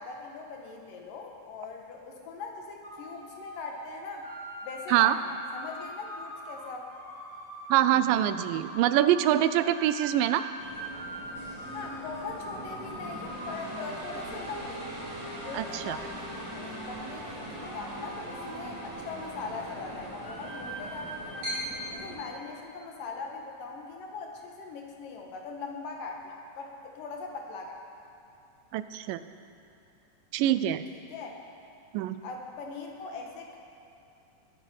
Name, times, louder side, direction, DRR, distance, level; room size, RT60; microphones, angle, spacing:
voice 1, 0.0-4.3 4.6-6.9 11.7-14.9 15.4-21.6 21.9-28.1 31.1-31.4 32.2-33.6, left 4 dB, 75° left, 1 dB, 3.0 m, -41 dB
sound 1, 2.8-21.5, right 1 dB, 15° left, 0.6 m, -44 dB
voice 2, 7.7-10.4 15.5-16.0 28.7-29.2 30.3-30.8 31.9-32.2, right 12 dB, 85° right, 12 dB, 2.2 m, -24 dB
sound 2, 10.6-22.2, equal, 70° right, 5.8 m, -40 dB
21.0 x 9.7 x 5.5 m, 2.7 s
omnidirectional pair, 3.9 m